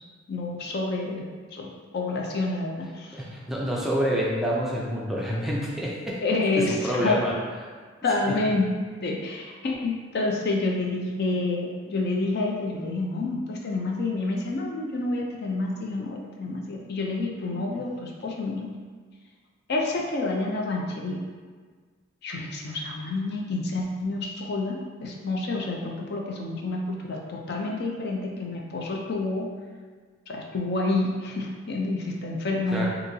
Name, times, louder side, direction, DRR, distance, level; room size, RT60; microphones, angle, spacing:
voice 1, 0.3-3.2 6.2-7.2 8.0-8.7 9.0-18.7 19.7-21.2 22.2-29.5 30.3-32.9, left 2 dB, 55° left, 0 dB, 0.4 m, -28 dB
voice 2, 3.1-7.3 8.2-8.4 32.7-32.9, equal, ahead, -5 dB, 0.4 m, -28 dB
3.8 x 2.8 x 2.7 m, 1.5 s
head